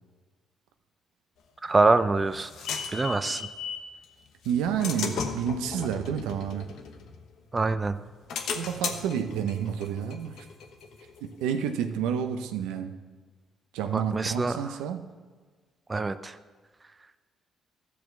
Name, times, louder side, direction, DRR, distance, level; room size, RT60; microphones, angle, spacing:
voice 1, 1.6-2.5 2.9-3.5 7.5-8.0 13.9-14.7 15.9-16.4, right 3 dB, 25° right, 12 dB, 0.5 m, -25 dB
sound 1, 1.7-3.9 4.4-7.5 8.0-11.4, left 6 dB, 75° left, 1.0 m, -36 dB
voice 2, 4.4-6.7 8.5-10.4 11.2-12.9 13.7-15.1, right 8 dB, 85° right, 7 dB, 0.7 m, -30 dB
13.5 x 4.7 x 7.0 m, 1.5 s
supercardioid pair, 65°, 0 cm